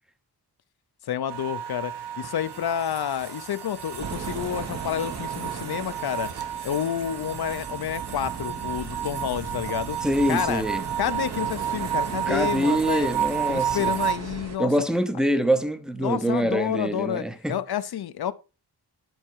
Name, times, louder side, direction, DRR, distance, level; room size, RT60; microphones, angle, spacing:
voice 1, 1.0-6.3 6.6-10.0 10.3-10.6 11.0-13.1 13.5-14.7 16.0-18.3, left 10 dB, 65° left, 0.7 m, -29 dB
sound 1, 1.3-14.1, right 10 dB, 75° right, 1.6 m, -32 dB
sound 2, 4.0-14.6, right 5 dB, 40° right, 1.0 m, -37 dB
voice 2, 10.0-10.8 12.3-13.9 14.6-17.6, right 1 dB, ahead, 0.7 m, -25 dB
11.0 x 4.4 x 4.6 m
wide cardioid pair, 160°, 40 cm